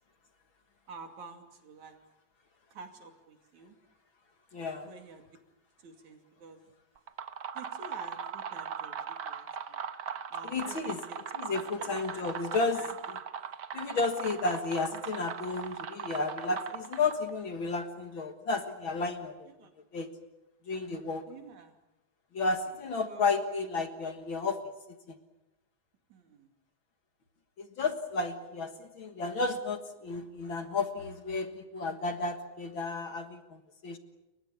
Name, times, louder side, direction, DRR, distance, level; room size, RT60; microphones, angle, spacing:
voice 1, 0.9-2.0 2.7-3.8 4.9-5.2 5.8-6.6 7.6-9.0 9.3-9.8 10.3-11.5 11.8-12.3 12.7-12.9 19.6-19.7 21.3-21.8 23.1-23.2 26.1-26.5, right 4 dB, 75° right, 5 dB, 3.9 m, -49 dB
voice 2, 4.5-4.9 10.4-11.0 11.3-13.2 13.7-19.5 19.9-20.1 20.7-21.3 22.3-24.6 24.9-25.2 27.6-34.0, left 3 dB, 50° left, 7 dB, 2.0 m, -32 dB
sound 1, 7.0-17.3, right 7 dB, 50° right, 1.3 m, -39 dB
29.5 x 23.0 x 7.1 m, 0.94 s
omnidirectional pair, 3.4 m